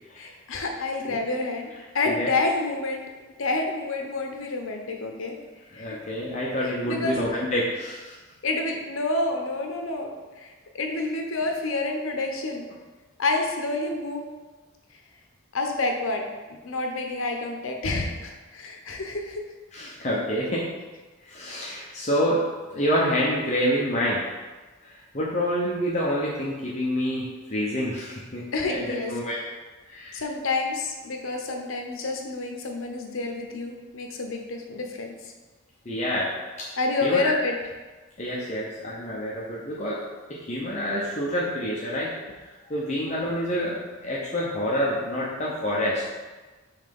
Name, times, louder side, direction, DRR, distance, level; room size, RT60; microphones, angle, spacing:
voice 1, 0.2-1.7 1.9-3.0 3.4-5.4 5.8-6.0 6.6-7.2 8.4-10.1 10.4-12.7 13.2-14.2 15.5-16.2 16.6-19.4 28.5-29.1 30.1-35.3 36.8-37.5, left 3 dB, 70° left, 3 dB, 0.8 m, -28 dB
voice 2, 5.7-8.2 19.7-20.6 21.2-22.4 22.7-24.2 24.8-28.4 28.7-29.4 29.9-30.2 35.8-36.3 36.6-36.7 37.0-37.4 38.2-40.0 40.3-42.1 42.7-46.0, equal, 30° left, -6 dB, 0.8 m, -27 dB
5.7 x 3.3 x 5.3 m, 1.3 s
head